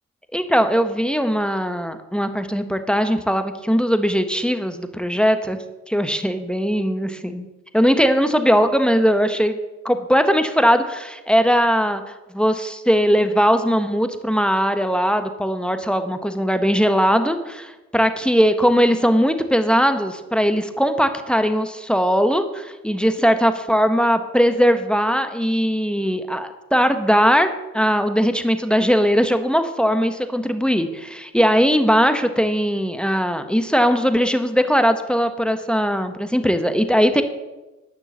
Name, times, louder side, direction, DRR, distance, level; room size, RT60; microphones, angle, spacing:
voice 1, 0.3-7.5 7.7-9.6 9.8-12.0 12.3-27.5 27.7-37.2, equal, 5° left, 8 dB, 1.2 m, -19 dB
10.5 x 6.2 x 7.2 m, 1.1 s
supercardioid pair, 50°, 34 cm